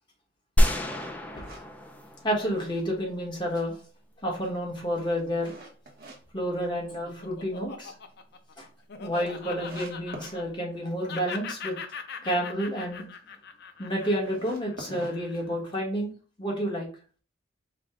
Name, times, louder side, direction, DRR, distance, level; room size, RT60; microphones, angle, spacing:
sound 1, 0.6-2.9, equal, 10° left, 0.5 m, -27 dB
sound 2, 0.9-2.6 3.0-3.1 3.6-6.2 6.6-7.3 7.7-7.8 8.1-8.2 8.4-8.5 9.1-9.2 9.6-10.4 14.1-16.0, right 1 dB, 50° right, 1.0 m, -45 dB
voice 1, 2.2-3.8 4.2-5.6 6.3-7.9 8.6-8.7 9.0-11.7 12.2-13.0 13.8-16.1 16.4-16.9, equal, 25° left, -2 dB, 1.4 m, -30 dB
Laughter, 6.7-10.8 11.1-15.5, left 6 dB, 55° left, 0.5 m, -41 dB
4.9 x 2.3 x 3.6 m, 0.39 s
head